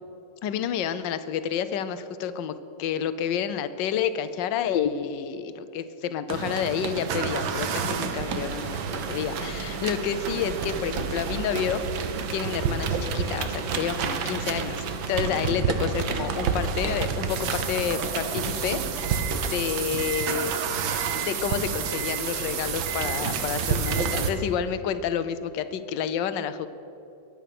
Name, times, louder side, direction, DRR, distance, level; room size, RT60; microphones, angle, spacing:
voice 1, 0.4-11.8 12.1-18.8 19.5-20.6 21.2-26.7, left 8 dB, 70° left, 12 dB, 1.4 m, -29 dB
sound 1, 6.3-24.3, right 6 dB, 75° right, 1.8 m, -29 dB
23.0 x 8.9 x 6.0 m, 2.9 s
omnidirectional pair, 2.2 m